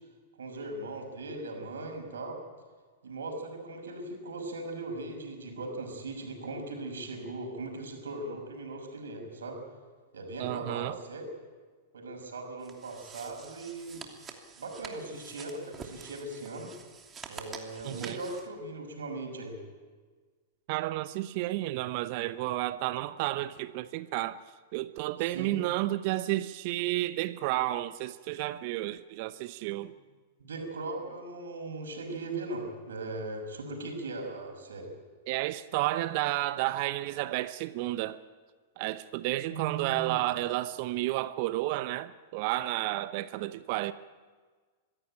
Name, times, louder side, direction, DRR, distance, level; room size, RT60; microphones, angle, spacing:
voice 1, 0.4-2.4 3.0-9.6 10.1-11.2 11.9-14.0 14.6-16.7 17.3-19.6 25.2-25.6 30.4-34.9 39.5-40.2, right 2 dB, 75° right, 6.1 m, -39 dB
voice 2, 10.4-11.0 17.8-18.2 20.7-24.4 24.7-29.9 35.3-38.2 38.8-43.9, right 16 dB, 50° right, 0.8 m, -31 dB
sound 1, 12.6-18.5, right 6 dB, 20° right, 2.9 m, -47 dB
25.0 x 16.5 x 8.9 m
figure-of-eight pair, 100°, 0 cm